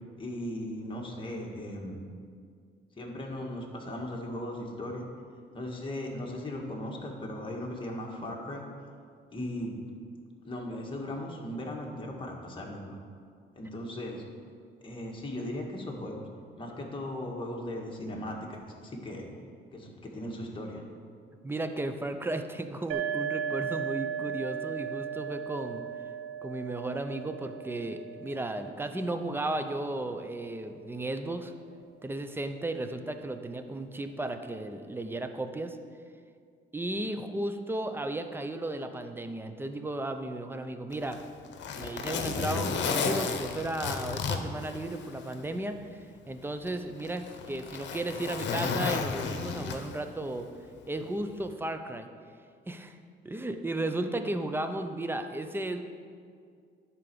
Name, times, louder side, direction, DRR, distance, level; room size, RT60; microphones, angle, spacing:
voice 1, 0.2-2.0 3.0-5.0 5.5-8.6 9.3-9.8 10.4-13.0 13.6-14.3 14.8-16.2 16.6-19.3 19.7-20.9, left 1 dB, 25° left, -1 dB, 1.8 m, -37 dB
voice 2, 21.4-25.8 26.4-31.5 32.0-35.8 36.7-41.2 41.7-50.5 50.9-52.1 52.7-53.0 53.2-55.8, right 1 dB, 10° right, 7 dB, 0.7 m, -34 dB
sound 1, 22.9-30.4, right 8 dB, 85° right, 0.6 m, -37 dB
Zipper (clothing), 40.9-45.4 45.8-45.9 46.7-50.1 51.3-51.5, left 5 dB, 65° left, 1.0 m, -33 dB
11.0 x 4.5 x 6.9 m, 2.2 s
cardioid pair, 90°, 20 cm